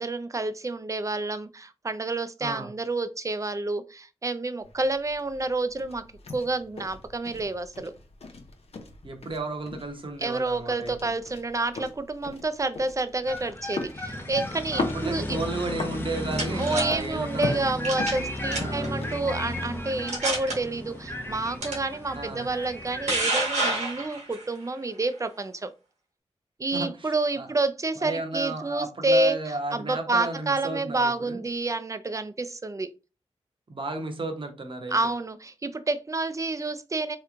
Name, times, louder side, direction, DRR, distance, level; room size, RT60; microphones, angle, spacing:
voice 1, 0.0-6.0 6.3-7.9 10.2-15.4 16.5-25.7 26.6-29.4 29.7-32.9 34.9-37.2, right 2 dB, 30° right, 0.5 m, -29 dB
voice 2, 2.4-2.7 9.0-11.1 14.7-17.6 18.5-18.9 22.1-22.5 26.7-27.5 28.0-31.4 33.7-35.0, right 2 dB, 50° right, 0.9 m, -33 dB
sound 1, 4.6-21.6, left 3 dB, 65° left, 0.6 m, -40 dB
sound 2, 13.3-23.2, left 1 dB, 20° left, 0.8 m, -34 dB
sound 3, 15.9-16.8 17.8-18.2 18.5-18.9 19.5-19.6 20.1-20.5 21.6-21.7 22.7-24.4, right 2 dB, 85° right, 1.3 m, -28 dB
3.2 x 3.0 x 2.4 m
cardioid pair, 45°, 11 cm